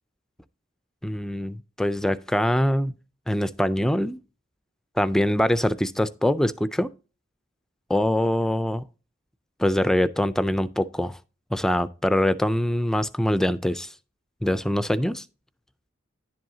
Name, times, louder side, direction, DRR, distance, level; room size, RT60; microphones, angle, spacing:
voice 1, 1.0-2.9 3.3-4.2 5.0-6.9 7.9-8.8 9.6-11.2 11.5-13.9 14.4-15.2, left 1 dB, 5° left, 0.3 m, -23 dB
10.5 x 7.6 x 2.7 m
head